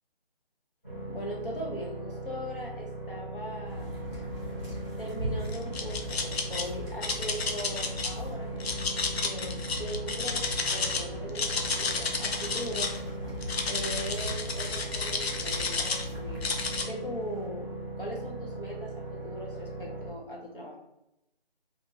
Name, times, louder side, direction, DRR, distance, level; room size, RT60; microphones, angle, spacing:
sound 1, 0.8-20.1, right 2 dB, 20° left, 1.1 m, -39 dB
voice 1, 1.1-4.0 5.0-8.5 9.2-12.9 13.7-17.7 18.0-20.8, equal, 60° left, -2 dB, 0.9 m, -40 dB
sound 2, 3.6-16.8, left 1 dB, 5° left, 1.0 m, -40 dB
sound 3, 5.5-6.6 7.0-8.1 8.6-11.0 11.3-13.0 13.4-16.0 16.4-16.9, left 4 dB, 90° left, 0.6 m, -31 dB
2.6 x 2.6 x 2.7 m, 0.85 s
figure-of-eight pair, 180°, 30 cm